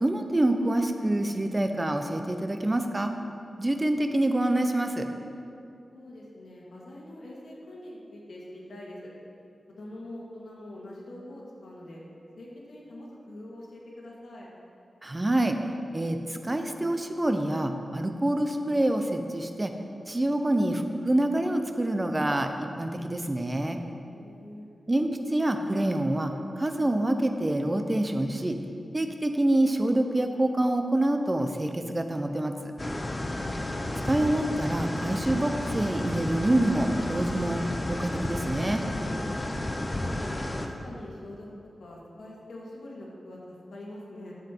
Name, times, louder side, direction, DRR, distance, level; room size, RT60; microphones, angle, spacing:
voice 1, 0.0-3.1 3.6-5.1 15.0-15.6 15.9-19.7 20.1-23.8 24.9-28.6 28.9-32.7 34.0-38.8, right 1 dB, 20° right, 6 dB, 0.6 m, -26 dB
voice 2, 5.9-9.1 9.8-12.0 12.4-14.5 24.0-24.7 39.4-41.5 41.8-44.3, left 1 dB, 80° left, -4 dB, 1.9 m, -44 dB
sound 1, 32.8-40.7, left 1 dB, 25° left, 0.6 m, -32 dB
11.0 x 7.4 x 4.5 m, 2.6 s
wide cardioid pair, 130°, 0 cm